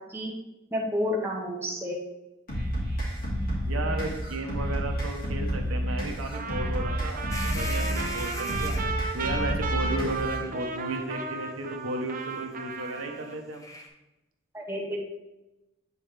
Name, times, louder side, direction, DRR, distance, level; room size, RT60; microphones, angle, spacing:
voice 1, 0.7-2.0 14.5-15.0, left 1 dB, 10° right, -3 dB, 1.2 m, -30 dB
sound 1, 2.5-10.5, equal, 45° left, 2.4 m, -30 dB
voice 2, 3.6-8.8 9.1-13.7, right 2 dB, 80° right, 3 dB, 0.9 m, -34 dB
Trumpet, 6.3-13.4, right 4 dB, 40° right, 0.6 m, -35 dB
sound 2, 7.3-8.9 10.1-10.3 12.2-12.4 12.7-13.9, left 1 dB, 15° left, 0.7 m, -40 dB
8.3 x 4.3 x 3.3 m, 0.99 s
head